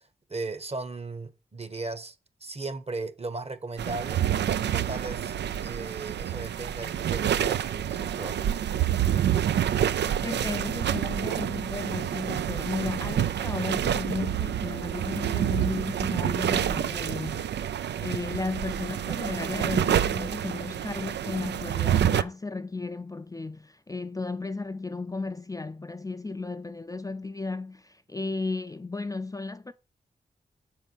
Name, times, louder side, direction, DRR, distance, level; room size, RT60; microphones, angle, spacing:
voice 1, 0.0-4.2 4.7-5.3 5.6-8.4, right 3 dB, 35° right, 1.2 m, -37 dB
sound 1, 3.8-22.2, right 10 dB, 75° right, 0.4 m, -28 dB
voice 2, 10.2-29.7, left 3 dB, 20° left, 0.5 m, -34 dB
7.2 x 4.6 x 5.6 m
supercardioid pair, 40°, 18 cm